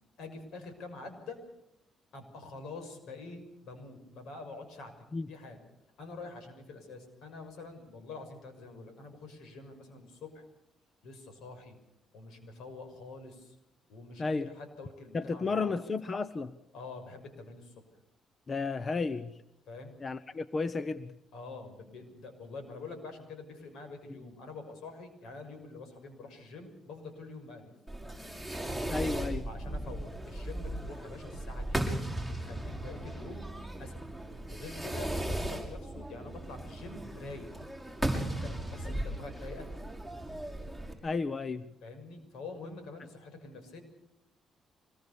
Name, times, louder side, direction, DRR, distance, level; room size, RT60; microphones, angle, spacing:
voice 1, 0.2-1.4 2.1-5.6 6.0-10.4 11.0-11.8 12.1-13.6 13.9-15.8 16.7-17.7 19.7-20.0 21.3-27.7 29.4-31.8 32.3-33.5 33.8-34.0 34.5-37.5 38.1-39.7 41.8-43.8, left 3 dB, 80° left, 7 dB, 6.3 m, -46 dB
voice 2, 15.1-16.5 18.5-19.4 20.0-21.1 28.9-29.4 38.8-38.9 41.0-41.6, left 4 dB, 35° left, 14 dB, 1.0 m, -33 dB
Fireworks, 27.9-40.9, right 1 dB, 10° left, 6.3 m, -37 dB
25.5 x 21.0 x 7.0 m, 0.83 s
cardioid pair, 90°, 0 cm